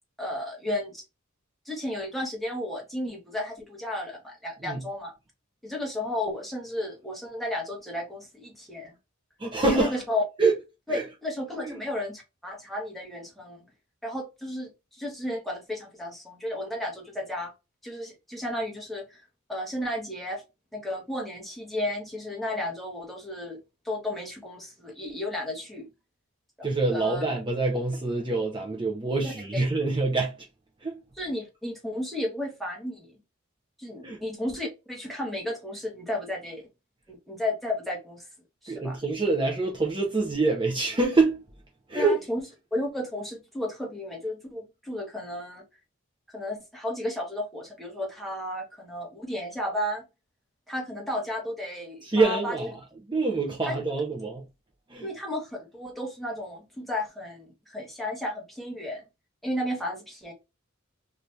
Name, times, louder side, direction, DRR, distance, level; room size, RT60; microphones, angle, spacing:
voice 1, 0.2-1.0 1.6-5.1 5.6-8.9 9.7-10.2 10.9-13.6 14.0-17.5 17.8-20.4 20.7-23.6 23.8-25.9 26.6-26.7 26.9-27.2 29.2-29.6 31.2-33.2 33.8-36.6 37.1-38.3 38.6-39.0 41.9-42.4 42.7-45.6 46.3-50.0 50.7-52.7 53.6-53.7 55.0-59.0 59.4-60.3, left 1 dB, ahead, 0.9 m, -33 dB
voice 2, 9.4-10.0 10.4-10.5 10.9-11.0 11.6-11.8 26.6-30.3 30.8-31.0 34.0-34.2 38.7-41.4 41.9-42.2 52.0-52.8 53.1-54.5 54.9-55.1, right 3 dB, 25° right, 0.6 m, -25 dB
2.7 x 2.4 x 3.2 m
head